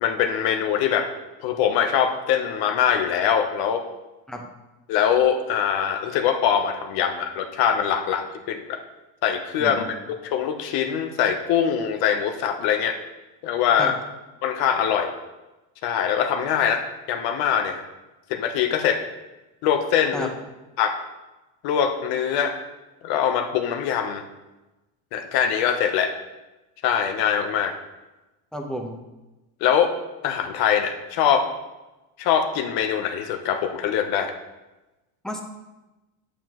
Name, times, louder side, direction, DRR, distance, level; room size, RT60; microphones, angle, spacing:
voice 1, 0.0-1.1 1.4-3.8 4.9-8.8 9.2-13.0 13.4-13.9 14.4-15.1 15.8-17.8 18.3-19.0 19.6-20.3 20.8-20.9 21.6-22.5 23.0-24.2 25.1-26.1 26.8-27.7 29.6-29.9 30.2-31.5 32.2-34.3, left 8 dB, 55° left, 6 dB, 0.8 m, -23 dB
voice 2, 28.5-29.0 35.2-35.4, equal, ahead, 2 dB, 0.8 m, -31 dB
9.1 x 8.2 x 3.0 m, 1.1 s
cardioid pair, 150°, 43 cm